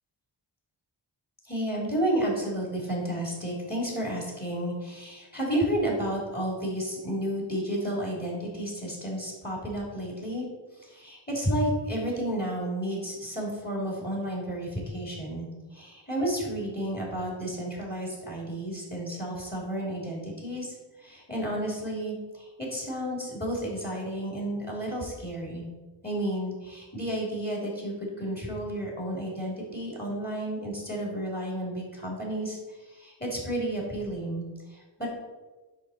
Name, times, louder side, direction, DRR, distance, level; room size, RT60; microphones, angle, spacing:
voice 1, 1.4-10.5 10.8-25.6 26.0-35.1, right 1 dB, 20° left, -3 dB, 3.3 m, -32 dB
10.0 x 4.1 x 7.4 m, 1.3 s
wide cardioid pair, 105°, 47 cm